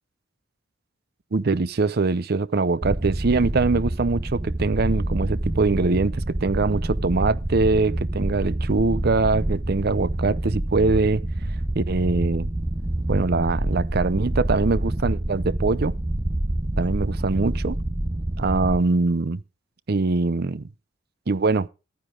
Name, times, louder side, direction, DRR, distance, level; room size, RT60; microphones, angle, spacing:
voice 1, 1.3-11.2 11.8-12.5 13.1-16.0 16.8-17.8 18.4-19.4 19.9-20.7 21.3-21.7, right 3 dB, 55° right, 0.6 m, -23 dB
sound 1, 2.8-18.8, right 1 dB, 25° right, 0.8 m, -27 dB
13.0 x 10.0 x 3.8 m
head